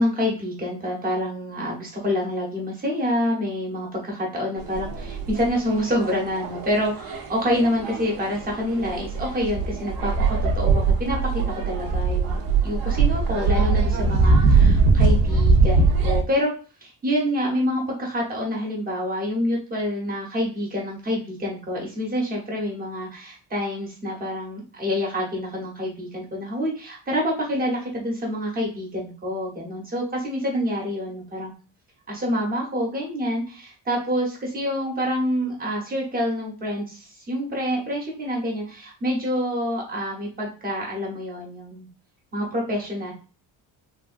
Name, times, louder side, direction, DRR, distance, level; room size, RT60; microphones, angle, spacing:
voice 1, 0.0-16.5 16.8-31.5 32.1-41.9 42.3-43.1, equal, 20° right, -1 dB, 0.9 m, -27 dB
sound 1, 4.6-16.2, right 4 dB, 60° right, 0.6 m, -21 dB
3.3 x 2.3 x 2.4 m, 0.35 s
cardioid pair, 175°, 39 cm